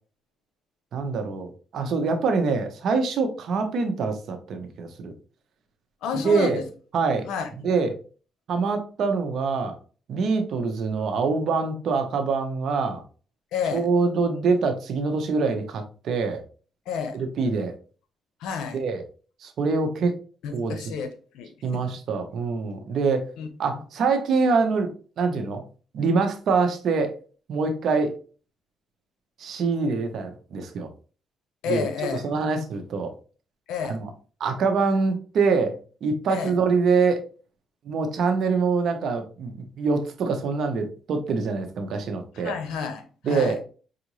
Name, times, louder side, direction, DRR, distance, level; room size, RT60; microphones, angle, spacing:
voice 1, 0.9-5.1 6.1-6.6 6.9-7.2 7.6-7.9 8.5-9.8 10.1-13.0 13.7-16.4 17.1-17.8 18.7-19.0 19.4-20.1 20.5-20.8 21.6-23.3 23.6-25.6 25.9-27.1 27.5-28.1 29.4-30.9 31.7-31.9 32.2-33.1 33.9-34.1 34.4-37.2 37.8-42.5 43.2-43.6, right 4 dB, 65° right, 0.8 m, -25 dB
voice 2, 6.0-6.6 7.3-7.5 13.5-13.9 16.9-17.2 18.4-18.8 20.4-21.9 23.4-23.5 23.7-23.8 31.6-32.3 33.7-34.0 36.3-36.5 42.3-43.6, left 6 dB, 90° left, 0.7 m, -30 dB
4.9 x 2.5 x 3.0 m
cardioid pair, 90°, 0 cm